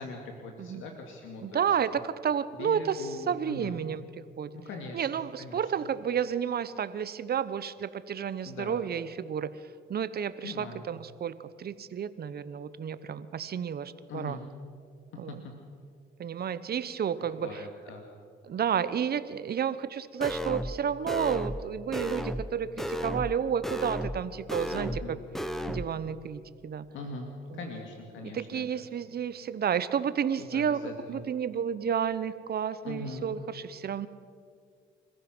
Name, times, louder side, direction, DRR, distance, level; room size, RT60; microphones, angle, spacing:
voice 1, 0.0-2.0 2.5-3.8 4.5-5.6 8.5-8.8 10.4-10.9 14.1-14.4 15.1-15.4 17.2-18.1 24.7-25.2 26.9-27.3 27.5-28.8 30.4-31.2 32.8-33.2, left 3 dB, 85° left, 2 dB, 2.4 m, -41 dB
voice 2, 1.4-4.0 4.4-4.5 4.9-9.5 9.9-14.4 15.2-15.4 16.2-17.6 18.4-25.2 25.7-26.8 27.5-27.6 28.2-30.8 31.1-34.1, right 8 dB, 50° right, 14 dB, 1.0 m, -31 dB
sound 1, 20.2-20.8 21.1-21.6 21.9-22.5 22.8-23.4 23.6-24.2 24.5-25.1 25.3-25.9, equal, ahead, 1.2 m, -33 dB
28.0 x 15.0 x 6.2 m, 2.2 s
cardioid pair, 90°, 20 cm